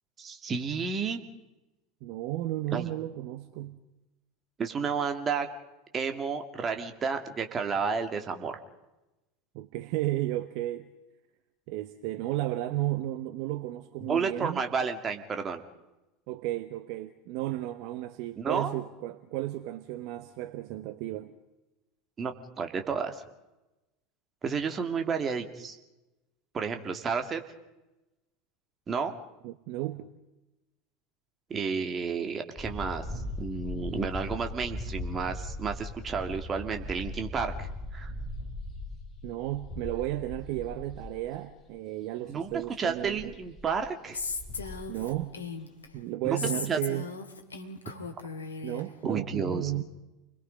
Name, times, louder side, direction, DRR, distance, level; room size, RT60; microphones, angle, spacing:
voice 1, 0.2-1.2 2.7-2.9 4.6-5.5 5.9-8.6 14.0-15.6 18.4-18.7 22.2-23.2 24.4-25.8 26.5-27.4 28.9-29.1 31.5-33.0 33.4-38.1 42.3-42.5 42.8-44.2 46.2-46.4 46.7-46.8 49.0-49.8, right 5 dB, 25° right, 6 dB, 2.4 m, -31 dB
voice 2, 2.0-3.8 9.5-10.9 11.7-14.6 16.3-21.3 29.4-30.1 39.2-43.3 44.9-45.3 45.9-47.1 48.6-49.8, right 15 dB, 50° right, 11 dB, 1.0 m, -33 dB
sound 1, 32.6-41.3 41.5-41.6 42.5-42.6 42.9-43.8 44.2-45.2, left 1 dB, 10° left, 7.3 m, -39 dB
Female speech woman speaking, 44.1-45.9 46.4-48.8, left 4 dB, 75° left, 2.1 m, -37 dB
29.5 x 21.5 x 5.2 m, 1.0 s
figure-of-eight pair, 75°, 0 cm